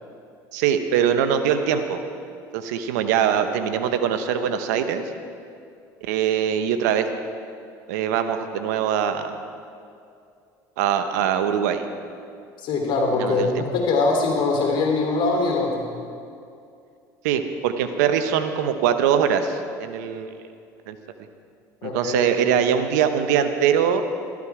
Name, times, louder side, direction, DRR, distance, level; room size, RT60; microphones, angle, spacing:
voice 1, 0.5-2.0 2.5-5.0 6.0-7.1 7.9-9.4 10.8-11.9 13.2-13.7 17.2-20.3 20.9-21.0 21.8-24.0, right 8 dB, 85° right, 9 dB, 0.9 m, -22 dB
voice 2, 12.6-16.0 21.8-22.3, left 3 dB, 60° left, 1 dB, 3.1 m, -22 dB
13.0 x 12.0 x 4.8 m, 2.5 s
supercardioid pair, 85°, 9 cm